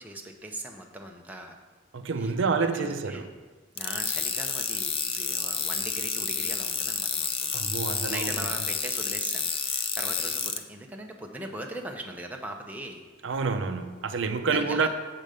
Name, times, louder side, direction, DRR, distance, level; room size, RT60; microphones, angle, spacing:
voice 1, 0.0-1.6 2.2-3.3 3.7-7.5 8.1-13.0 14.5-14.9, right 1 dB, 10° right, 1 dB, 0.7 m, -40 dB
voice 2, 1.9-3.3 7.5-8.3 13.2-14.9, right 4 dB, 60° right, 8 dB, 0.5 m, -28 dB
sound 1, 3.8-10.6, left 6 dB, 30° left, 0.5 m, -30 dB
7.5 x 5.2 x 6.6 m, 1.4 s
head